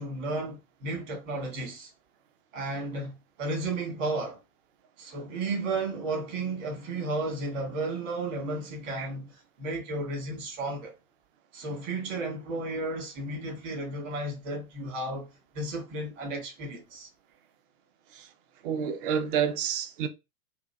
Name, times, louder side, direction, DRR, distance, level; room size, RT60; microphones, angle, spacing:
voice 1, 0.0-1.9 2.5-4.4 5.0-10.9 11.5-17.1, right 2 dB, 55° right, 1.9 m, -33 dB
voice 2, 18.6-20.1, right 8 dB, 40° right, 0.5 m, -29 dB
3.6 x 2.5 x 2.3 m
figure-of-eight pair, 95°, 46 cm